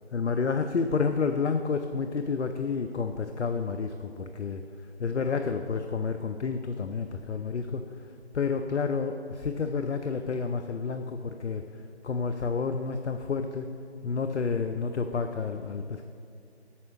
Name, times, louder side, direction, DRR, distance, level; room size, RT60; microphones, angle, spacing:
voice 1, 0.1-4.6 5.0-7.8 8.3-11.6 12.0-13.7 14.0-16.0, left 5 dB, 90° left, 7 dB, 0.5 m, -30 dB
8.5 x 4.3 x 5.9 m, 2.3 s
figure-of-eight pair, 170°, 33 cm